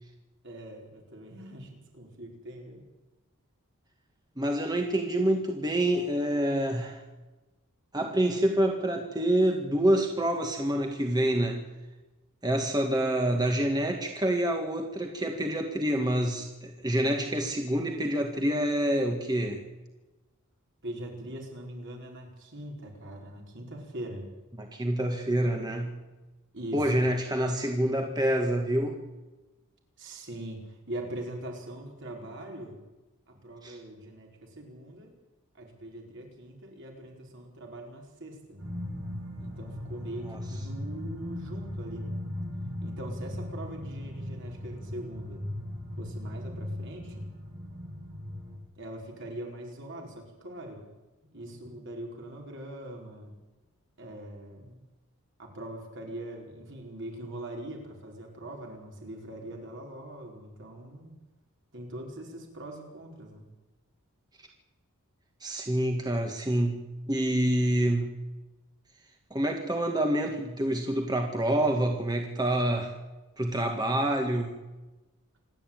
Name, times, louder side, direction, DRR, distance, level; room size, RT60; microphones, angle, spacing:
voice 1, 0.4-2.9 20.8-24.3 26.5-27.0 30.0-32.8 33.3-35.1 35.5-38.6 39.4-42.2 42.8-45.5 46.0-47.3 48.8-50.9 51.3-53.3 54.0-54.8 55.4-61.2 61.7-63.4, right 1 dB, 55° right, 1 dB, 5.1 m, -42 dB
voice 2, 4.4-7.0 7.9-11.6 12.4-19.6 24.6-26.0 26.7-29.0 33.6-33.8 40.3-40.4 65.4-68.1 69.3-72.9 73.4-74.6, right 1 dB, 20° right, 3 dB, 1.8 m, -27 dB
sound 1, 38.6-48.6, left 1 dB, 70° right, 7.3 m, -38 dB
27.0 x 11.5 x 9.0 m, 1.1 s
head